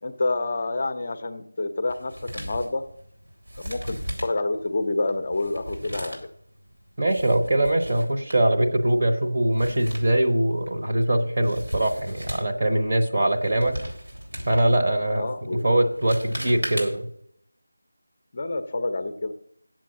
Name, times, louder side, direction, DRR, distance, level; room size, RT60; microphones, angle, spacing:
voice 1, 0.0-2.8 3.6-6.2 15.2-15.6 18.3-19.3, left 2 dB, 30° left, 9 dB, 0.6 m, -28 dB
Male speech man speaking, 1.9-17.2, equal, 80° right, 3.9 m, -38 dB
voice 2, 7.0-13.8 14.5-17.1, right 1 dB, 30° right, 1 dB, 1.1 m, -22 dB
8.4 x 7.6 x 7.2 m, 0.70 s
figure-of-eight pair, 175°, 0 cm